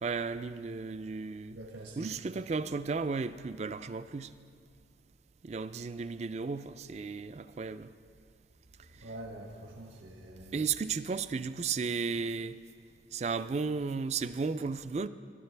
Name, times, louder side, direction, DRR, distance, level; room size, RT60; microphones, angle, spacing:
voice 1, 0.0-1.6 2.0-4.3 5.4-7.9 10.5-12.6 13.1-15.1, right 5 dB, 35° right, 13 dB, 0.3 m, -34 dB
voice 2, 1.5-2.2 9.0-11.1, right 1 dB, 85° right, -1 dB, 1.4 m, -46 dB
20.0 x 13.0 x 3.3 m, 2.3 s
head